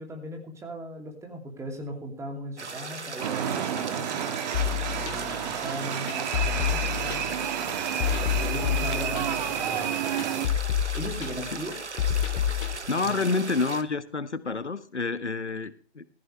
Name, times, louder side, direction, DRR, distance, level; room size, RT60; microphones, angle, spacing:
voice 1, 0.0-4.4 4.9-7.3 8.4-9.9 10.9-11.8 12.9-13.3, right 1 dB, 10° right, 3 dB, 2.9 m, -38 dB
sound 1, 2.6-13.8, right 4 dB, 85° right, 1.6 m, -38 dB
sound 2, 3.2-10.5, right 9 dB, 40° right, 1.7 m, -30 dB
sound 3, 4.5-12.8, left 10 dB, 30° left, 2.2 m, -29 dB
voice 2, 12.9-16.0, left 4 dB, 85° left, 14 dB, 1.4 m, -28 dB
15.5 x 15.0 x 3.3 m, 0.35 s
figure-of-eight pair, 130°, 34 cm